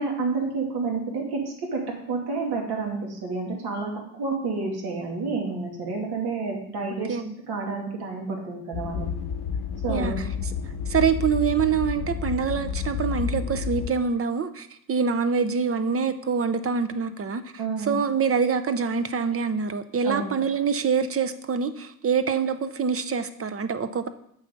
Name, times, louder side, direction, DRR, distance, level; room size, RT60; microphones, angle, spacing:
voice 1, 0.0-1.4 1.7-1.8 2.1-3.9 4.2-7.2 7.5-9.1 9.8-10.2 17.6-18.0 20.0-20.4, right 4 dB, 70° right, 0 dB, 2.6 m, -29 dB
sound 1, 8.7-13.9, left 7 dB, 70° left, 0.9 m, -30 dB
voice 2, 10.9-17.4 17.8-24.1, right 6 dB, 35° right, 10 dB, 0.7 m, -25 dB
7.0 x 7.0 x 5.3 m, 0.72 s
cardioid pair, 100°, 40 cm